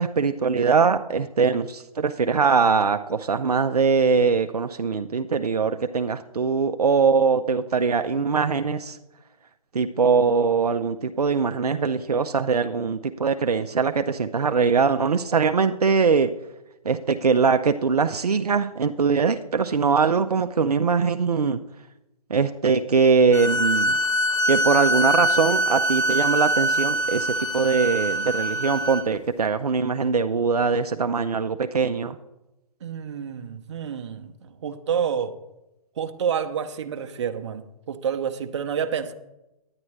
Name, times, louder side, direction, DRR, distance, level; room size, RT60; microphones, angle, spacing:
voice 1, 0.0-9.0 9.7-16.3 16.8-21.6 22.3-23.9 24.5-32.2, right 5 dB, 80° right, 8 dB, 0.5 m, -22 dB
sound 1, 23.3-29.0, right 1 dB, 50° left, 0.9 m, -23 dB
voice 2, 32.8-35.3 36.0-39.1, right 7 dB, 50° right, 8 dB, 0.7 m, -29 dB
9.7 x 9.6 x 3.2 m, 0.93 s
figure-of-eight pair, 135°, 19 cm